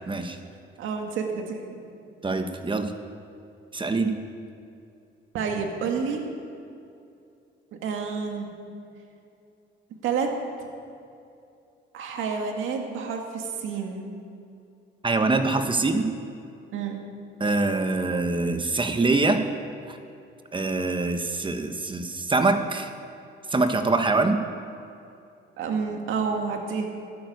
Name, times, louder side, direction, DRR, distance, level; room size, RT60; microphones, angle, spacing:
voice 1, 0.1-0.4 2.2-2.9 3.7-4.2 15.0-16.1 17.4-19.5 19.9-20.0 20.5-22.9 23.5-24.4, right 3 dB, 25° right, 7 dB, 1.2 m, -24 dB
voice 2, 0.8-1.8 5.3-6.2 7.8-8.5 10.0-10.3 11.9-14.1 16.7-17.0 25.6-26.9, right 5 dB, 85° right, 3 dB, 2.0 m, -29 dB
13.0 x 9.4 x 9.5 m, 2.6 s
cardioid pair, 90°, 20 cm